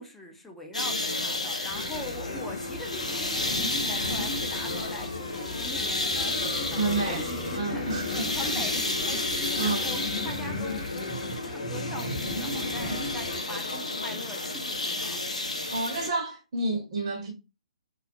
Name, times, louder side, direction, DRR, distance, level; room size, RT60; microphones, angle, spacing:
voice 1, 0.0-15.2, left 1 dB, 5° left, 0.5 m, -42 dB
sound 1, 0.7-16.1, left 2 dB, 80° left, 0.6 m, -32 dB
sound 2, 1.7-13.4, left 2 dB, 40° left, 1.0 m, -35 dB
voice 2, 6.8-7.2 7.5-8.3 9.5-9.9 15.7-17.3, right 3 dB, 45° right, 0.6 m, -29 dB
2.3 x 2.1 x 2.7 m
figure-of-eight pair, 130°, 4 cm